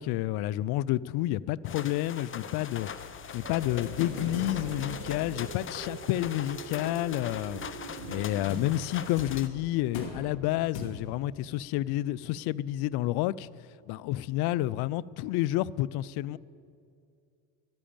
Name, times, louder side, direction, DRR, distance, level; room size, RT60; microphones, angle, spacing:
voice 1, 0.0-2.9 3.3-7.6 8.1-13.5 13.9-16.4, left 15 dB, 55° left, 0.5 m, -30 dB
sound 1, 1.6-9.5, left 7 dB, 25° left, 0.8 m, -41 dB
sound 2, 2.4-11.3, left 3 dB, 70° left, 2.6 m, -43 dB
sound 3, 3.4-8.5, right 11 dB, 75° right, 0.9 m, -46 dB
12.5 x 10.5 x 8.7 m
supercardioid pair, 100°, 47 cm